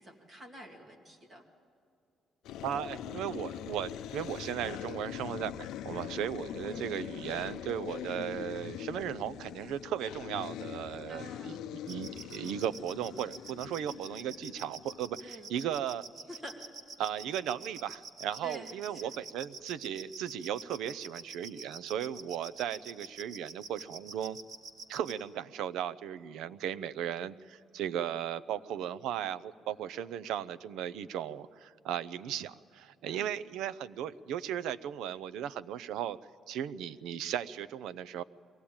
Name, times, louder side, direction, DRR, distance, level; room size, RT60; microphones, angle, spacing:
voice 1, 0.0-1.4 6.7-7.1 11.1-11.6 15.2-15.5 16.4-16.5 18.4-19.1 33.1-33.4, equal, 20° right, 0 dB, 2.4 m, -48 dB
sound 1, 2.4-15.4, left 11 dB, 85° left, 0.6 m, -42 dB
voice 2, 2.6-16.0 17.0-24.4 24.9-36.2 36.5-38.2, right 10 dB, 85° right, 16 dB, 0.6 m, -36 dB
sound 2, 11.9-25.1, right 4 dB, 50° right, 1.8 m, -45 dB
23.0 x 17.0 x 8.8 m, 2.5 s
cardioid pair, 180°, 0 cm